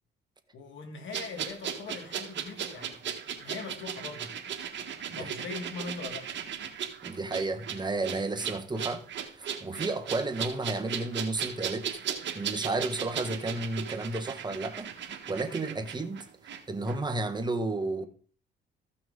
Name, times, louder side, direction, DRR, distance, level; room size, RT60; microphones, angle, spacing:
voice 1, 0.5-3.1 3.4-4.3 5.1-6.3, left 4 dB, 70° left, 2.3 m, -41 dB
sound 1, 1.1-16.6 16.9-17.0, right 8 dB, 60° right, 1.7 m, -37 dB
voice 2, 7.0-9.0 9.4-11.9 12.3-16.3 16.7-18.1, right 2 dB, 20° right, 1.5 m, -32 dB
14.5 x 5.9 x 4.0 m
cardioid pair, 80°, 21 cm